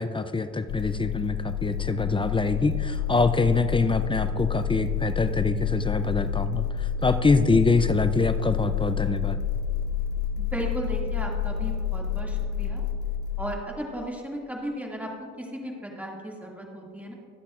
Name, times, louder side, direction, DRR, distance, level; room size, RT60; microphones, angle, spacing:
voice 1, 0.0-6.7 7.0-9.4, left 3 dB, 15° left, 11 dB, 0.5 m, -24 dB
sound 1, 0.7-13.5, left 7 dB, 75° left, 0.6 m, -29 dB
voice 2, 10.4-12.8 13.4-15.1 15.4-17.1, equal, 5° right, -1 dB, 2.2 m, -35 dB
23.5 x 8.1 x 2.5 m, 2.3 s
cardioid pair, 90°, 30 cm